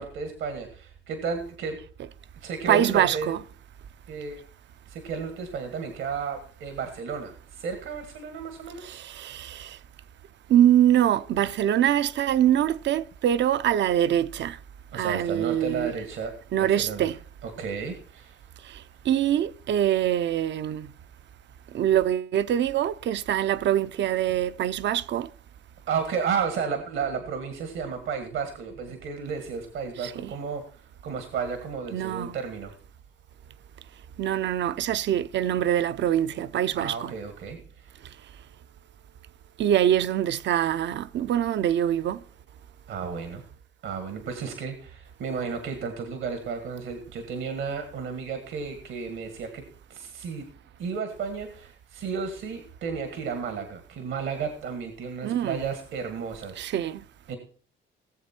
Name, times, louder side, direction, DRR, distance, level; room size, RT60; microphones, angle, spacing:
voice 1, 0.0-1.8 2.4-3.3 4.1-4.4 4.9-9.4 14.9-17.1 17.4-18.4 25.9-30.6 31.0-32.7 36.7-38.0 42.9-43.4 43.8-49.6 49.9-50.5 50.8-56.6 57.3-57.4, right 6 dB, 80° right, 1.8 m, -33 dB
voice 2, 2.7-3.4 8.8-9.8 10.5-14.6 14.9-15.9 16.5-17.2 18.6-20.9 21.7-25.3 30.0-30.3 31.9-32.4 34.2-37.1 39.6-42.2 55.2-55.6 56.6-57.0, right 11 dB, 65° right, 0.6 m, -24 dB
18.5 x 7.4 x 4.4 m
cardioid pair, 90°, 20 cm